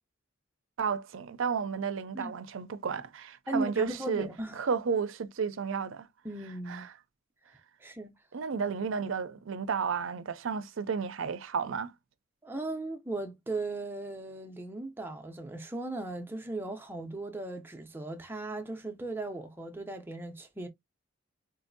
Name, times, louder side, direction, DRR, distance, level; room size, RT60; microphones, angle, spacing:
voice 1, 0.8-4.3 4.6-6.1 6.7-6.8 8.3-11.9, right 6 dB, 70° right, 0.5 m, -32 dB
voice 2, 3.5-4.6 6.2-6.9 7.8-8.1 12.4-20.7, right 2 dB, 10° right, 0.5 m, -37 dB
3.8 x 2.6 x 2.5 m
head